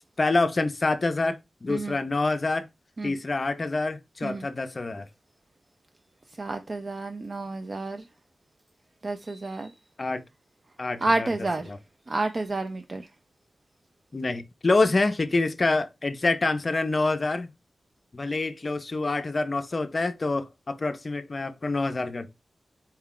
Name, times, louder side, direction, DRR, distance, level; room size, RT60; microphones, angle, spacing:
voice 1, 0.2-2.7 3.0-5.1 10.0-10.2 10.8-11.3 11.7-11.8 14.1-17.5 18.1-22.3, left 3 dB, 40° left, 0.5 m, -26 dB
voice 2, 6.4-8.1 9.0-9.7 11.0-11.7 12.1-13.0, right 2 dB, 40° right, 0.4 m, -29 dB
4.3 x 2.3 x 3.6 m
wide cardioid pair, 105°, 0 cm